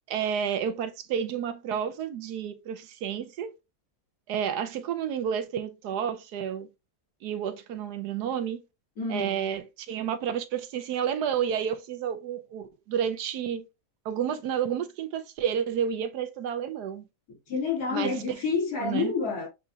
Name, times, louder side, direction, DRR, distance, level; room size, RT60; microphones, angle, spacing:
voice 1, 0.1-3.5 4.3-6.7 7.2-8.6 9.1-13.7 14.0-17.1 17.9-18.2 18.8-19.1, right 8 dB, 80° right, 1.2 m, -30 dB
voice 2, 9.0-9.5 17.5-19.5, left 4 dB, 70° left, 2.9 m, -29 dB
7.1 x 2.5 x 2.7 m
omnidirectional pair, 1.7 m